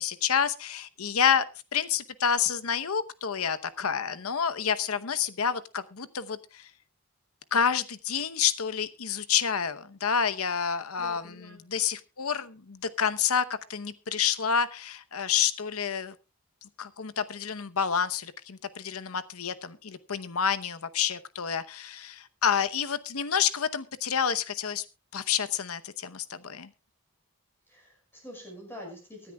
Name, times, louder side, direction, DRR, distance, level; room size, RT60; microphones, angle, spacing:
voice 1, 0.0-1.4 1.7-6.7 7.5-16.1 16.6-24.8 25.1-26.7, left 7 dB, 90° left, 13 dB, 0.9 m, -29 dB
voice 2, 11.0-11.6 27.7-29.3, left 1 dB, 10° left, 1 dB, 5.6 m, -45 dB
24.0 x 10.0 x 2.3 m, 0.27 s
head